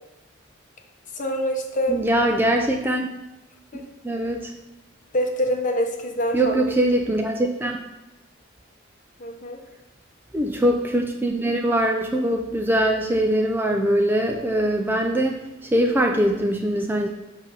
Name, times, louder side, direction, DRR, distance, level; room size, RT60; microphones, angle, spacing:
voice 1, 1.1-1.9 3.7-3.8 5.1-6.7 9.2-9.6, equal, 40° left, 2 dB, 0.8 m, -25 dB
voice 2, 1.9-3.1 4.0-4.5 6.3-7.8 10.3-15.4 15.7-17.1, right 1 dB, 10° right, 2 dB, 0.3 m, -22 dB
7.2 x 2.7 x 5.6 m, 0.97 s
head